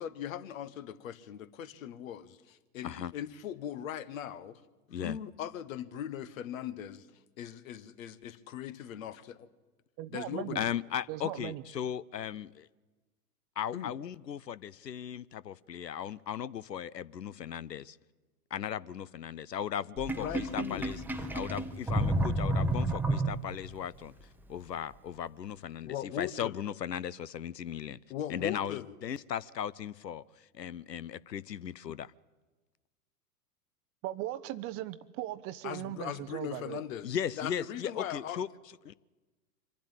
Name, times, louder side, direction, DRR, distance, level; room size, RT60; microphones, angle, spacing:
voice 1, 0.0-4.6 5.0-7.1 7.4-9.5 10.1-10.7 13.7-13.9 20.2-20.9 25.8-26.6 28.1-28.9 35.6-38.4, left 10 dB, 55° left, 1.3 m, -39 dB
voice 2, 10.0-10.6 11.1-11.6 34.0-36.8, right 14 dB, 30° right, 0.7 m, -38 dB
voice 3, 10.5-12.7 13.6-18.0 18.5-21.0 21.3-24.1 24.5-28.0 28.3-30.2 30.6-32.1 37.0-38.5 38.9-39.0, left 9 dB, 85° left, 0.6 m, -37 dB
Sink (filling or washing), 20.0-23.7, right 1 dB, 5° right, 0.9 m, -31 dB
25.0 x 12.0 x 8.8 m
figure-of-eight pair, 95°, 48 cm